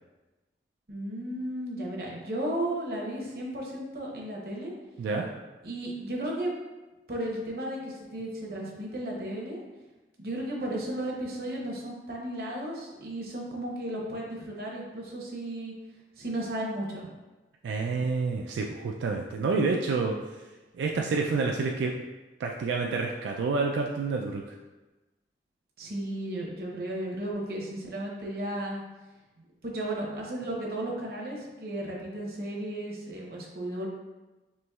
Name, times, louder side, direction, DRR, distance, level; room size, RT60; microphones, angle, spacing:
voice 1, 0.9-4.7 5.6-6.5 7.1-9.6 10.2-15.7 16.2-17.1 25.8-28.8 29.6-33.9, right 1 dB, 55° right, -2 dB, 0.8 m, -34 dB
voice 2, 5.0-5.3 17.6-20.2 20.7-22.0 22.4-24.4, right 4 dB, 90° right, 0 dB, 0.3 m, -28 dB
4.4 x 3.0 x 2.3 m, 1.1 s
head